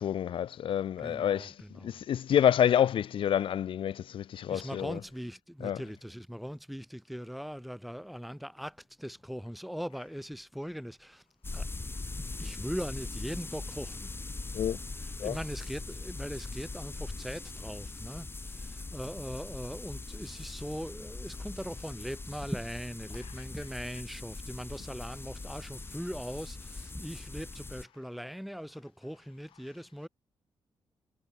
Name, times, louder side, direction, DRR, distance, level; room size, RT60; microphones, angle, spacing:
voice 1, 0.0-5.0 5.6-5.8 14.5-14.8 15.2-15.4, left 10 dB, 70° left, 0.9 m, -28 dB
voice 2, 1.0-1.9 4.5-11.2 11.5-11.7 12.4-14.1 15.2-30.1, equal, ahead, 5.4 m, -40 dB
sound 1, 11.4-27.8, left 3 dB, 25° left, 7.9 m, -41 dB
cardioid pair, 85°, 9 cm